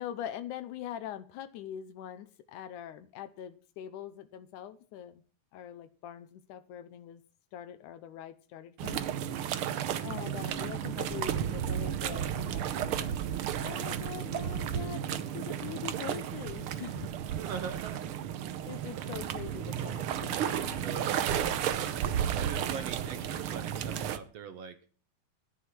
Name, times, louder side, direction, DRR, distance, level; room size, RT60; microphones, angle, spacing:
voice 1, 0.0-5.2 5.5-7.2 7.5-9.0 10.0-13.2 13.6-17.1 18.7-21.5, left 10 dB, 80° left, 2.3 m, -43 dB
sound 1, 8.8-24.2, right 10 dB, 80° right, 1.2 m, -33 dB
voice 2, 9.5-9.8 17.4-18.2 20.8-22.0 22.4-24.8, right 6 dB, 60° right, 2.0 m, -42 dB
sound 2, 19.1-24.2, right 4 dB, 30° right, 2.1 m, -49 dB
13.5 x 10.5 x 6.1 m
omnidirectional pair, 3.6 m